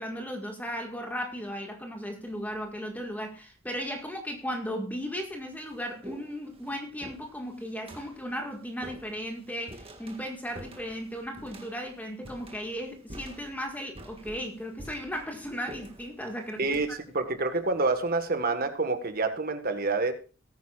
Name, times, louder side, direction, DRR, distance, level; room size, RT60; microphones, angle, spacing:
voice 1, 0.0-17.0, equal, 10° left, 3 dB, 1.7 m, -36 dB
sound 1, 2.3-2.7 3.6-3.7 4.6-4.7 5.1-18.6, right 1 dB, 25° right, 1.7 m, -49 dB
voice 2, 17.1-20.1, right 3 dB, 45° right, 8 dB, 1.4 m, -27 dB
19.0 x 9.4 x 2.4 m, 0.34 s
head